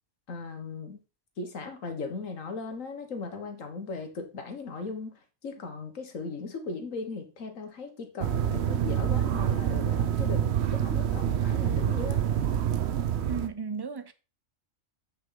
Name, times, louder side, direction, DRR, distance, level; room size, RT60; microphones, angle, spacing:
voice 1, 0.3-1.0 1.4-5.1 5.4-12.3, left 4 dB, 75° left, 1.8 m, -37 dB
sound 1, 8.2-13.5, right 10 dB, 60° right, 0.9 m, -27 dB
voice 2, 13.3-14.1, right 6 dB, 25° right, 0.5 m, -34 dB
7.8 x 6.4 x 3.9 m
omnidirectional pair, 1.4 m